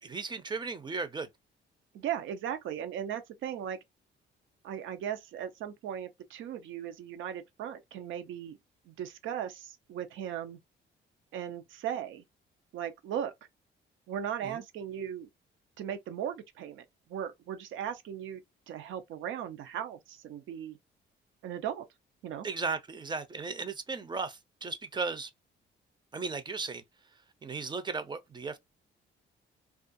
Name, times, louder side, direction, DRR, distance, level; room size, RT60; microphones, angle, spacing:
voice 1, 0.0-1.3 14.4-14.6 22.4-25.3 26.1-26.8 27.4-28.6, right 4 dB, 20° right, 0.5 m, -36 dB
voice 2, 1.9-3.8 4.6-8.6 8.9-10.6 11.3-12.2 12.7-13.3 14.1-15.3 15.8-18.4 18.7-20.8 21.4-21.8 22.2-22.5, right 9 dB, 80° right, 0.5 m, -37 dB
2.3 x 2.3 x 2.5 m
cardioid pair, 90°, 20 cm